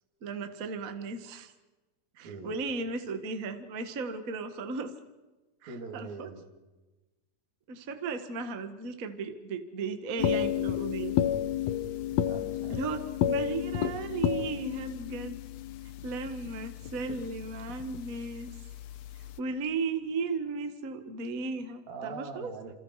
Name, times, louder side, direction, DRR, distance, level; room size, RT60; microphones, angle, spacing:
voice 1, 0.2-1.5 2.2-4.9 5.6-6.3 7.7-11.1 12.7-13.0 13.3-15.4 16.0-18.5 19.4-22.5, right 4 dB, 70° right, 7 dB, 0.8 m, -35 dB
voice 2, 2.2-2.6 5.7-6.4 12.1-12.8 21.9-22.8, right 4 dB, 50° right, 2 dB, 4.3 m, -42 dB
sound 1, 10.2-19.4, left 10 dB, 85° left, 1.5 m, -32 dB
28.5 x 28.0 x 4.9 m, 1.1 s
omnidirectional pair, 4.4 m